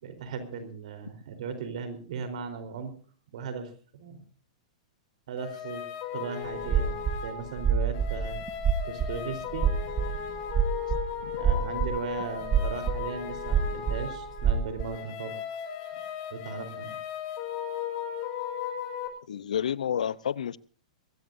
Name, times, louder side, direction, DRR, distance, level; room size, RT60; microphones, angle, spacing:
voice 1, 0.0-2.9 3.3-4.2 5.3-5.8 6.1-8.4 8.8-9.7 11.3-15.4 15.9-16.0 16.3-16.9, right 5 dB, 70° right, 9 dB, 3.9 m, -37 dB
sound 1, 5.4-19.1, left 9 dB, 45° left, 4.8 m, -36 dB
sound 2, 6.6-7.2 7.5-14.8, right 7 dB, 20° right, 1.2 m, -26 dB
voice 2, 19.3-20.6, left 9 dB, 90° left, 18 dB, 0.7 m, -30 dB
23.0 x 17.5 x 2.7 m, 0.40 s
hypercardioid pair, 135°, 4 cm